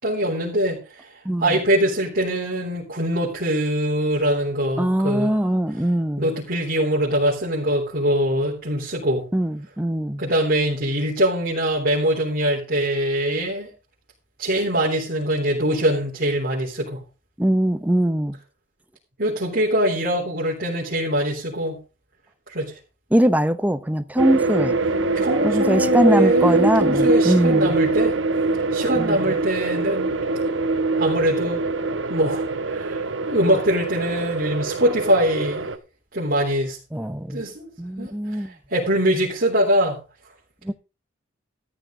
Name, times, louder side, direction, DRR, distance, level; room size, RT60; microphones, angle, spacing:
voice 1, 0.0-5.4 6.2-9.2 10.2-13.7 14.4-17.0 19.2-21.8 22.5-22.8 25.1-28.2 28.7-30.2 31.0-31.6 32.1-33.0 33.3-35.7 36.1-36.8 37.3-37.7 38.0-40.0, right 1 dB, 50° right, 3.6 m, -23 dB
voice 2, 1.2-1.6 4.8-6.3 9.3-10.2 17.4-18.4 23.1-24.8 25.4-27.7 29.0-29.4 36.9-37.4 37.8-38.5 40.6-40.7, right 1 dB, 10° right, 0.7 m, -21 dB
sound 1, 24.2-35.8, right 3 dB, 70° right, 1.2 m, -23 dB
13.5 x 10.5 x 3.8 m
head